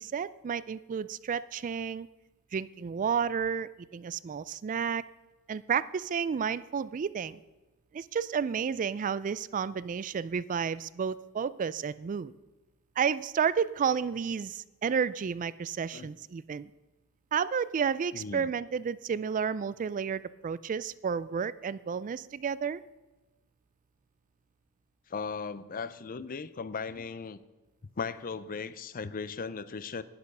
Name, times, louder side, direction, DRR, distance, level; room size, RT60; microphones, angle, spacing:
voice 1, 0.0-2.1 2.5-5.0 5.5-7.4 7.9-12.3 13.0-16.7 17.3-22.8, right 7 dB, 35° right, 17 dB, 0.3 m, -31 dB
voice 2, 18.1-18.5 25.1-27.4 28.0-30.0, left 5 dB, 40° left, 16 dB, 0.5 m, -37 dB
11.0 x 10.5 x 5.5 m, 1.1 s
head